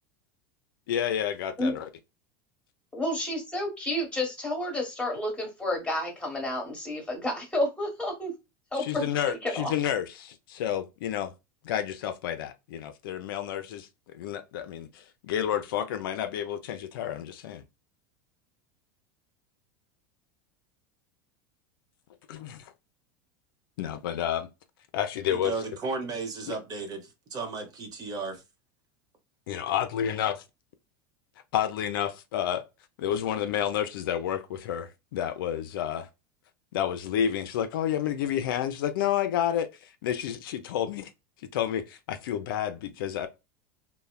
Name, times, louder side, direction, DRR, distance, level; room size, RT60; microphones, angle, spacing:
voice 1, 0.9-1.9 8.7-11.3 11.6-17.6 22.3-22.7 23.8-24.5 24.9-25.5 26.5-26.6 29.5-30.3 31.5-32.6 33.0-36.1 36.7-41.1 41.5-43.3, left 10 dB, 80° left, 0.4 m, -30 dB
voice 2, 2.9-8.3 8.7-9.7, left 1 dB, 10° left, 1.2 m, -30 dB
voice 3, 25.3-28.4, right 4 dB, 35° right, 0.8 m, -34 dB
3.1 x 2.1 x 2.2 m
supercardioid pair, 115°, 11 cm